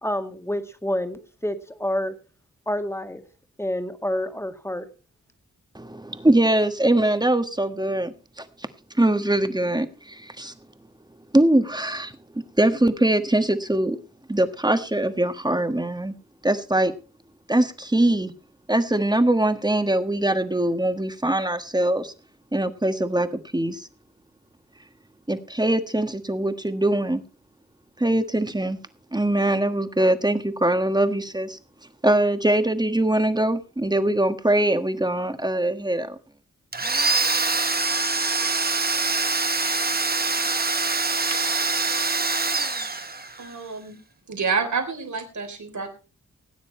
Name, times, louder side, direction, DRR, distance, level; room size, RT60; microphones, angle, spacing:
voice 1, 0.0-2.1 2.7-3.2 3.6-4.9, left 1 dB, 10° left, 7 dB, 1.8 m, -28 dB
voice 2, 5.7-8.5 8.9-10.5 11.3-14.0 14.3-16.1 16.4-16.9 17.5-18.3 18.7-22.1 22.5-23.9 25.3-27.2 28.0-28.8 29.1-31.6 32.0-36.1, right 1 dB, 15° right, 9 dB, 1.4 m, -22 dB
Domestic sounds home sounds, 36.7-43.5, right 3 dB, 30° right, 1.4 m, -24 dB
voice 3, 43.4-44.0 44.3-45.9, right 5 dB, 70° right, 6 dB, 3.6 m, -28 dB
18.0 x 9.5 x 4.3 m, 0.35 s
wide cardioid pair, 95°, 30 cm